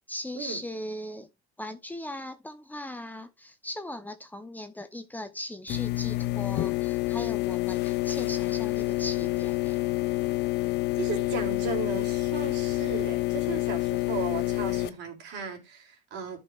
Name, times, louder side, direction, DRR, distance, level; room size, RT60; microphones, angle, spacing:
voice 1, 0.1-1.3 1.6-9.8, left 1 dB, 10° left, 1.0 m, -39 dB
sound 1, 5.7-14.9, left 18 dB, 60° left, 0.9 m, -28 dB
voice 2, 11.0-16.4, right 6 dB, 65° right, 3.5 m, -36 dB
13.5 x 5.6 x 2.6 m
supercardioid pair, 85°, 20 cm